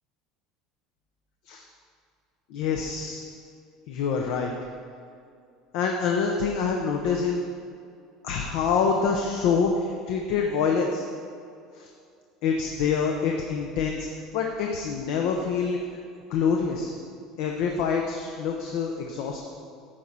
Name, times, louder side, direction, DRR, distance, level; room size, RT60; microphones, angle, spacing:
voice 1, 2.5-3.3 3.9-4.5 5.7-7.5 8.2-11.0 11.7-11.9 12.4-14.1 14.3-15.8 16.3-16.9 17.4-19.4, left 5 dB, 70° left, 2 dB, 0.7 m, -26 dB
9.1 x 4.3 x 6.1 m, 2.4 s
supercardioid pair, 115°, 0 cm